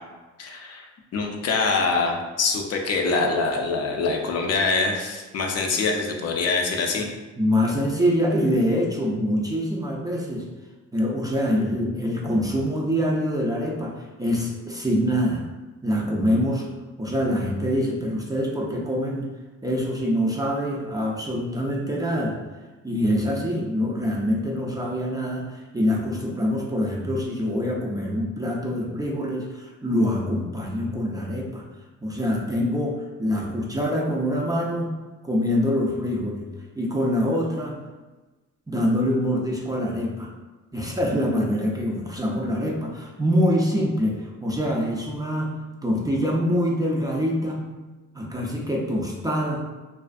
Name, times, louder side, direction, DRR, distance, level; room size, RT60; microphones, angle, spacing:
voice 1, 0.4-0.9 1.1-7.1, left 4 dB, 55° left, 1 dB, 0.5 m, -24 dB
voice 2, 7.4-10.5 10.9-15.5 15.8-16.7 17.0-19.3 19.6-22.4 22.8-31.7 32.0-34.9 35.2-36.5 36.8-37.8 38.7-40.3 40.7-45.6 45.8-47.7 48.1-49.6, equal, 15° right, -3 dB, 0.4 m, -25 dB
2.4 x 2.4 x 2.4 m, 1.2 s
cardioid pair, 90°, 30 cm